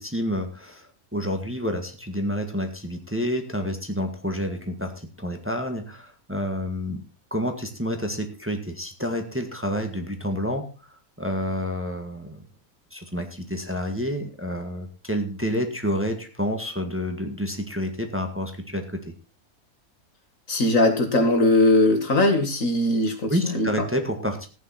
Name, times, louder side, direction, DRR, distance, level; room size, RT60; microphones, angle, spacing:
voice 1, 0.0-7.0 7.3-12.4 12.9-19.1 23.3-24.5, equal, 10° right, 5 dB, 1.7 m, -29 dB
voice 2, 20.5-23.9, left 1 dB, 65° left, 5 dB, 2.4 m, -20 dB
15.5 x 9.2 x 4.3 m, 0.33 s
omnidirectional pair, 1.5 m